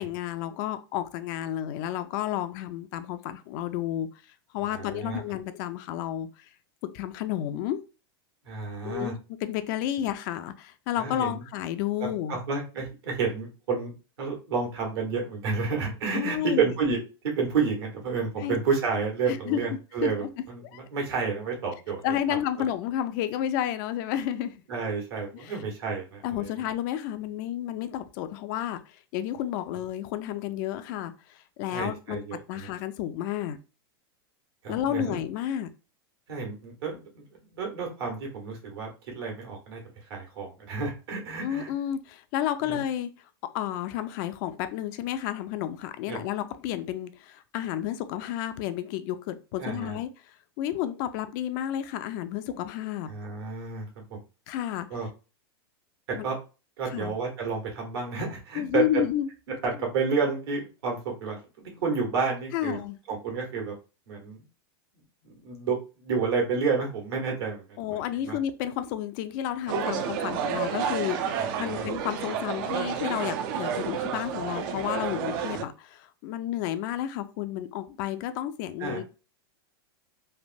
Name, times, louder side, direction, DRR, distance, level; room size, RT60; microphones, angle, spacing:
voice 1, 0.0-4.1 4.5-6.3 6.9-7.8 8.8-9.1 9.4-12.4 16.1-16.7 18.4-18.6 19.3-20.3 20.6-20.8 22.0-24.5 25.3-25.6 26.2-32.2 32.5-33.6 34.7-35.7 41.4-43.1 43.5-50.1 50.6-53.1 54.5-55.0 56.1-56.3 56.8-57.2 58.5-59.3 62.5-63.0 67.8-79.0, left 11 dB, 50° left, 0.4 m, -31 dB
voice 2, 4.7-5.2 8.4-9.1 11.0-11.4 12.3-13.9 14.2-17.0 17.2-22.0 24.7-26.5 31.7-32.7 34.6-35.2 36.3-37.2 37.5-38.9 39.1-39.8 40.1-41.7 42.6-42.8 46.1-46.2 49.6-50.0 53.1-54.2 54.9-55.1 56.2-56.4 56.8-59.0 59.5-62.8 63.1-63.7 64.1-64.4 65.2-68.4 71.4-71.9 78.8-79.0, right 5 dB, 75° right, 1.4 m, -30 dB
sound 1, 69.7-75.6, right 8 dB, 55° right, 0.4 m, -30 dB
3.3 x 2.1 x 2.5 m
supercardioid pair, 125°, 13 cm